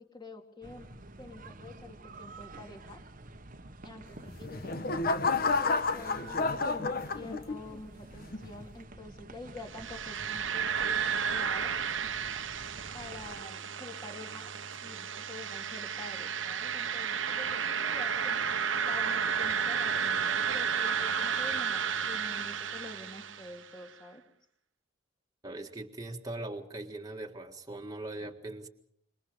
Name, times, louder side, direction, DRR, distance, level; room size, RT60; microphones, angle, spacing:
voice 1, 0.0-3.0 3.8-11.8 12.9-14.5 14.8-24.2 28.2-28.3, left 2 dB, 20° left, 4 dB, 2.6 m, -47 dB
sound 1, 0.6-13.4, right 2 dB, 45° right, 1.2 m, -49 dB
sound 2, 4.2-7.8 8.3-8.7, left 3 dB, 50° left, 1.2 m, -30 dB
sound 3, 9.7-23.6, right 7 dB, 75° right, 1.2 m, -32 dB
voice 2, 25.4-28.7, right 2 dB, 20° right, 1 dB, 1.8 m, -40 dB
26.0 x 22.5 x 5.2 m, 0.64 s
head